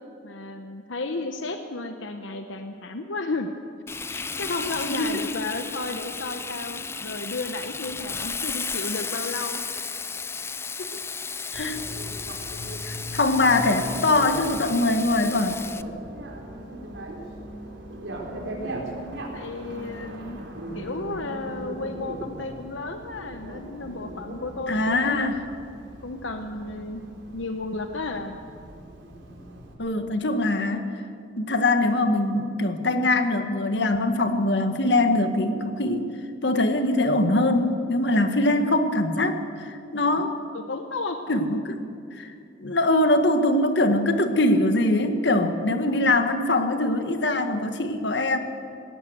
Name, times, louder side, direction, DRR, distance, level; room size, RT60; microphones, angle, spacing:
voice 1, 0.2-3.5 4.1-9.6 16.6-16.9 17.8-20.4 20.7-25.3 26.0-27.0 27.3-28.4 35.4-35.5 38.4-38.7 40.5-41.2 41.7-41.8 44.6-44.7 45.8-46.1, left 3 dB, 85° left, 6 dB, 1.0 m, -33 dB
Frying (food), 3.9-15.8, left 5 dB, 15° left, 0.4 m, -34 dB
voice 2, 4.9-5.2 10.8-11.0 11.5-11.8 12.8-15.6 24.7-25.4 29.8-30.9 31.4-36.1 36.4-40.4 41.3-41.8 42.2-42.3 42.6-48.4, left 2 dB, 65° left, 7 dB, 1.6 m, -22 dB
Bicycle, 11.5-29.7, right 1 dB, 80° right, 4.0 m, -39 dB
20.0 x 17.0 x 7.9 m, 2.5 s
head